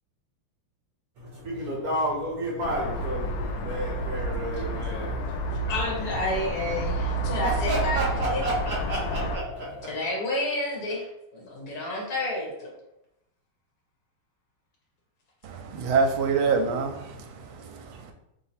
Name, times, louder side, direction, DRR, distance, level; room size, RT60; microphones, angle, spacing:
voice 1, 1.2-5.8 6.8-10.0, right 1 dB, 60° right, 1.1 m, -31 dB
sound 1, 2.6-9.4, right 1 dB, 85° left, 0.8 m, -30 dB
voice 2, 5.6-8.0 8.3-8.4 9.9-12.7, left 2 dB, 50° left, 1.5 m, -30 dB
voice 3, 15.4-18.1, right 5 dB, 75° right, 1.4 m, -26 dB
3.4 x 2.8 x 4.2 m
omnidirectional pair, 2.4 m